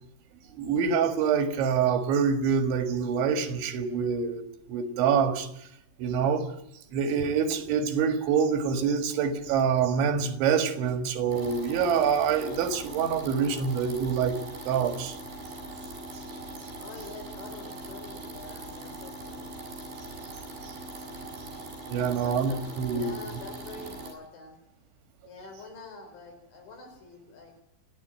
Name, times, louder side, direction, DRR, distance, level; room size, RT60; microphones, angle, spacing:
voice 1, 0.5-4.4 4.7-5.5 6.0-6.5 6.9-14.4 14.7-15.2 20.6-20.7 21.9-23.2, right 6 dB, 85° right, 4.1 m, -26 dB
sound 1, 11.3-24.1, right 2 dB, 65° right, 9.4 m, -41 dB
voice 2, 16.8-19.5 21.8-24.6 25.2-27.6, left 3 dB, 75° left, 6.8 m, -46 dB
28.0 x 11.0 x 9.1 m
omnidirectional pair, 5.2 m